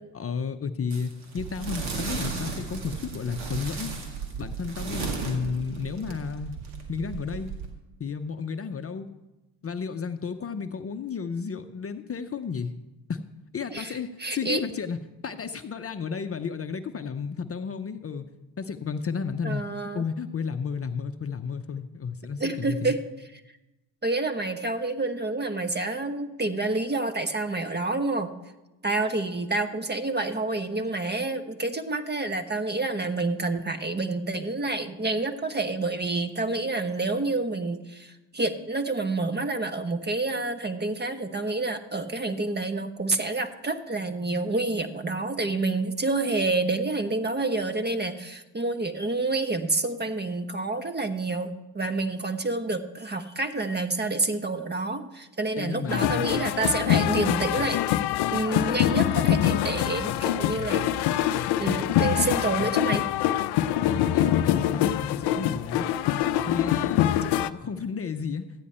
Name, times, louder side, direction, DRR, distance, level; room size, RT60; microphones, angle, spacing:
voice 1, 0.1-3.9 4.4-6.6 6.9-7.5 8.0-9.1 9.6-12.7 13.1-13.2 13.5-18.3 18.6-19.6 19.9-23.0 55.6-56.3 63.9-65.9 66.5-68.5, left 6 dB, 30° left, 8 dB, 0.8 m, -32 dB
sound 1, 0.9-7.7, right 3 dB, 70° right, 2.3 m, -36 dB
sound 2, 1.4-7.8, right 8 dB, 45° right, 0.9 m, -38 dB
voice 2, 13.7-14.6 19.4-20.0 22.4-23.0 24.0-28.3 28.8-57.8 58.3-60.9 61.6-63.0, right 2 dB, 20° right, 9 dB, 1.0 m, -28 dB
sound 3, 55.9-67.5, left 12 dB, 55° left, 0.6 m, -24 dB
14.0 x 9.7 x 4.4 m, 1.0 s
hypercardioid pair, 60°, 48 cm